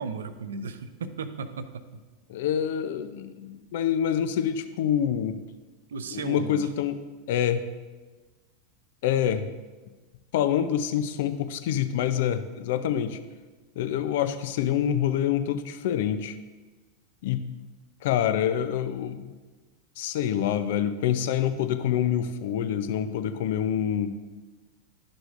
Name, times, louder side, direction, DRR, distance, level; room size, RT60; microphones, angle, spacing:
voice 1, 0.0-1.9 5.9-6.7, right 4 dB, 80° right, 11 dB, 0.5 m, -35 dB
voice 2, 2.3-5.4 6.1-7.0 7.3-7.6 9.0-9.5 10.3-13.2 13.8-16.4 17.2-17.5 18.0-19.3 20.0-24.1, left 9 dB, 70° left, 11 dB, 0.5 m, -26 dB
11.5 x 6.2 x 2.5 m, 1.3 s
hypercardioid pair, 95°, 0 cm